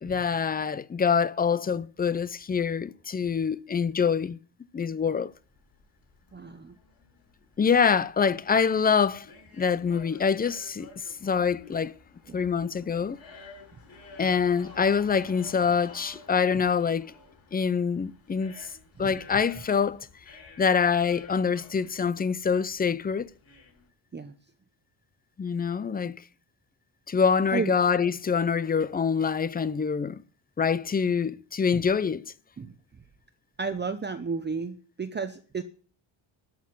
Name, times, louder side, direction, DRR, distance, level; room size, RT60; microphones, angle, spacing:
voice 1, 0.0-4.4 4.7-5.3 7.6-9.3 9.6-11.9 12.3-13.2 14.2-17.1 17.5-18.7 19.0-20.1 20.6-23.3 25.4-26.2 27.1-30.2 30.6-32.2, left 6 dB, 20° left, 0.5 m, -25 dB
sound 1, 5.3-23.9, left 4 dB, 45° left, 7.2 m, -52 dB
voice 2, 6.3-6.8 12.3-12.4 16.5-16.6 19.0-19.1 24.1-24.3 27.5-27.7 31.7-31.8 32.6-32.7 33.6-35.6, right 5 dB, 20° right, 0.8 m, -33 dB
12.5 x 6.5 x 9.4 m
cardioid pair, 150°, 48 cm